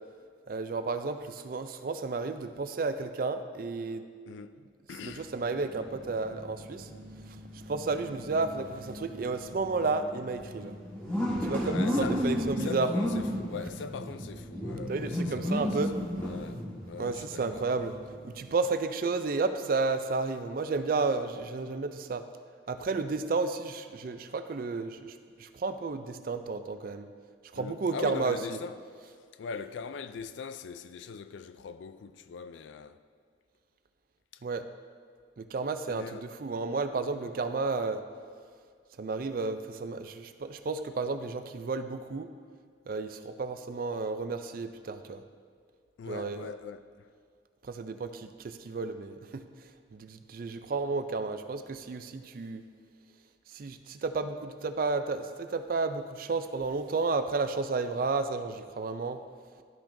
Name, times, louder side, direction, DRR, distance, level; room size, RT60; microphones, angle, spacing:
voice 1, 0.5-4.0 5.0-6.9 7.5-10.8 11.4-12.9 14.9-16.0 17.0-17.9 18.2-22.2 22.7-27.1 27.5-28.6 34.4-34.6 35.4-38.0 39.0-42.3 42.9-45.2 46.1-46.5 47.6-49.4 49.9-52.6 53.5-59.2, right 3 dB, 50° right, 0.4 m, -32 dB
voice 2, 4.3-4.6 4.9-5.3 11.6-12.2 12.6-17.7 27.6-28.8 29.4-33.0 34.3-34.4 35.9-36.3 46.0-47.1, left 5 dB, 75° left, 0.3 m, -41 dB
sound 1, 5.2-18.5, equal, 10° left, 1.4 m, -35 dB
12.0 x 5.8 x 2.6 m
head